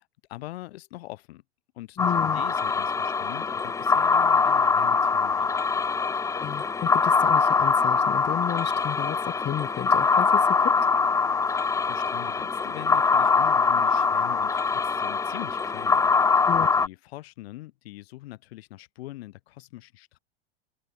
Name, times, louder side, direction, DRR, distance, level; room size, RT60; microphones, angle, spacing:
voice 1, 0.0-1.4 1.7-5.6 11.4-20.2, left 17 dB, 70° left, 5.5 m, -43 dB
voice 2, 2.0-2.4 6.0-10.8 16.5-16.7, left 12 dB, 35° left, 2.0 m, -32 dB
sound 1, 2.0-16.9, left 5 dB, 10° left, 0.5 m, -23 dB
hypercardioid pair, 105°, 32 cm